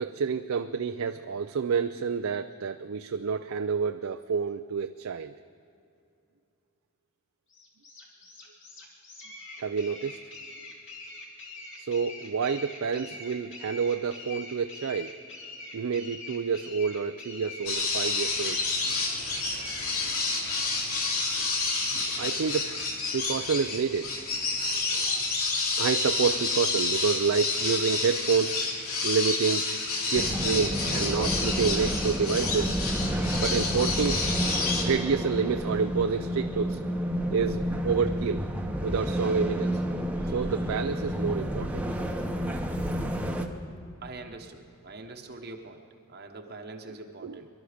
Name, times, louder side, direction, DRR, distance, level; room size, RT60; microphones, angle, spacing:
voice 1, 0.0-5.3 9.6-10.2 11.8-15.2 15.7-18.6 21.9-22.7 23.1-24.1 24.6-25.2 25.8-28.6 29.0-29.7 30.1-32.8 33.4-36.8 37.3-38.4 38.8-39.8 40.2-41.9 47.2-47.4, right 6 dB, 75° right, 8 dB, 0.4 m, -29 dB
sound 1, 7.5-19.9, left 3 dB, 60° left, 2.7 m, -44 dB
sound 2, 17.7-34.8, left 3 dB, 80° left, 2.5 m, -29 dB
sound 3, 30.1-43.5, equal, 5° right, 0.9 m, -30 dB
voice 2, 44.0-45.8 46.1-47.5, right 3 dB, 50° right, 3 dB, 1.0 m, -43 dB
23.5 x 12.0 x 5.1 m, 2.6 s
head